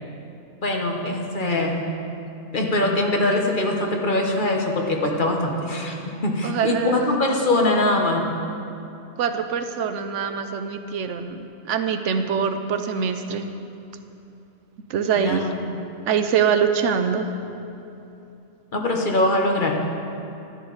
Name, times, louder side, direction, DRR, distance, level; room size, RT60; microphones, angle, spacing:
voice 1, 0.6-1.8 2.5-8.3 15.2-15.4 18.7-19.8, left 2 dB, 45° left, 1 dB, 1.1 m, -22 dB
voice 2, 6.4-7.0 9.2-13.5 14.9-15.5 16.1-17.3, right 7 dB, 75° right, 8 dB, 0.9 m, -24 dB
12.5 x 10.5 x 4.0 m, 2.8 s
omnidirectional pair, 1.3 m